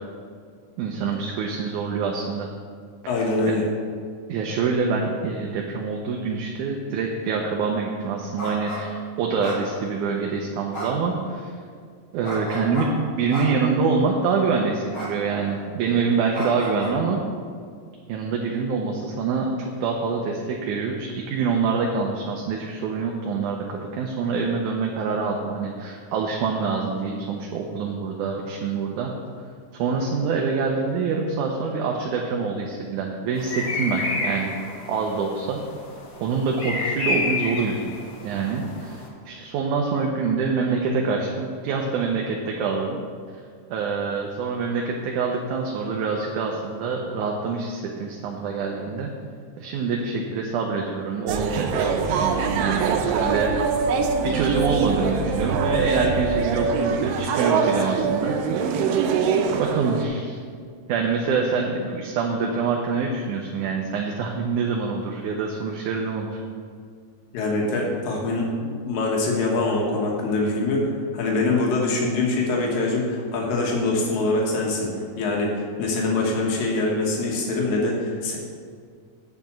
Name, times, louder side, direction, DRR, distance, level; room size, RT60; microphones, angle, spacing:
voice 1, 0.8-2.5 4.3-11.5 12.1-17.2 18.1-29.1 29.8-34.6 34.9-35.6 36.2-37.9 38.2-43.0 43.7-49.1 49.6-53.5 54.2-58.7 59.6-60.4 60.9-66.4, right 4 dB, 75° right, 0 dB, 2.1 m, -25 dB
voice 2, 3.1-3.6 67.3-74.9 75.2-78.4, left 2 dB, 85° left, -2 dB, 3.1 m, -24 dB
sound 1, 8.4-8.8 9.4-10.1 10.7-11.1 12.2-12.9 13.3-13.7 14.9-15.1 15.4-15.7 16.3-16.9, right 1 dB, 30° left, 3.1 m, -33 dB
sound 2, 33.4-39.1, left 3 dB, 55° left, 1.8 m, -30 dB
sound 3, 51.3-60.1, right 5 dB, 90° right, 2.4 m, -23 dB
9.1 x 5.7 x 7.3 m, 2.1 s
omnidirectional pair, 3.9 m